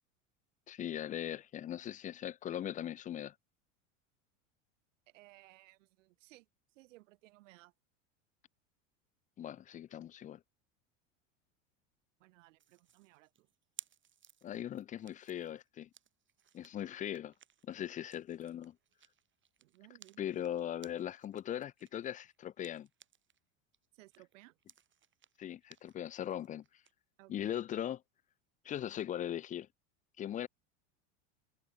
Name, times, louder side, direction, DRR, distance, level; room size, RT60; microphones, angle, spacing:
voice 1, 0.7-3.3 9.4-10.4 14.4-15.9 16.5-17.3 17.6-18.8 20.2-22.9 25.4-26.6 27.3-28.0 28.6-29.7 30.2-30.5, left 11 dB, 20° left, 0.4 m, -39 dB
voice 2, 5.1-7.7 12.2-13.5 19.6-20.3 23.9-24.6 27.2-27.6, right 19 dB, 75° right, 7.0 m, -60 dB
sound 1, 12.6-23.4 23.7-26.9, right 9 dB, 30° right, 2.3 m, -59 dB
hypercardioid pair, 95°, 38 cm